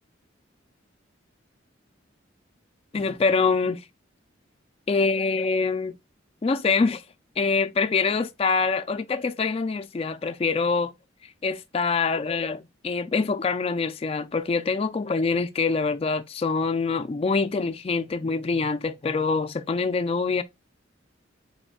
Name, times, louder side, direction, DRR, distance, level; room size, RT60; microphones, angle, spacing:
voice 1, 2.9-3.8 4.9-6.0 6.4-7.0 7.4-10.9 11.4-20.4, left 4 dB, 30° left, 0.3 m, -25 dB
4.2 x 3.8 x 2.3 m
head